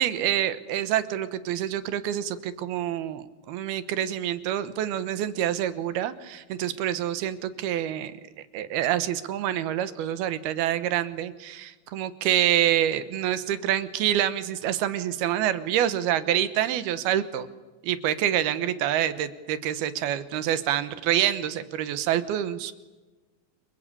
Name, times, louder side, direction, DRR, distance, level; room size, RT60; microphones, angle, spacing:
voice 1, 0.0-8.1 8.5-17.5 17.8-22.7, right 11 dB, 80° right, 13 dB, 3.0 m, -27 dB
28.5 x 22.0 x 8.5 m, 1.2 s
omnidirectional pair, 4.5 m